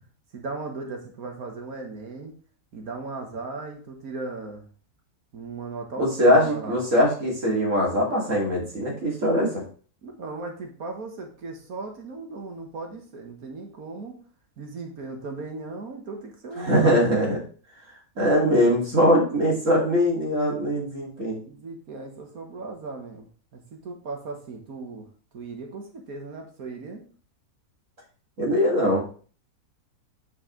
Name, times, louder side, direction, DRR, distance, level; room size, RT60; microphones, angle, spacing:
voice 1, 0.3-2.3 2.7-4.7 5.3-6.8 10.0-14.2 14.6-17.1 21.4-25.1 25.3-27.0, right 3 dB, 70° right, 2 dB, 1.7 m, -37 dB
voice 2, 6.0-9.6 16.6-17.4 18.2-21.4 28.4-29.0, equal, 55° right, -3 dB, 2.8 m, -21 dB
8.7 x 4.8 x 3.8 m, 0.42 s
omnidirectional pair, 1.6 m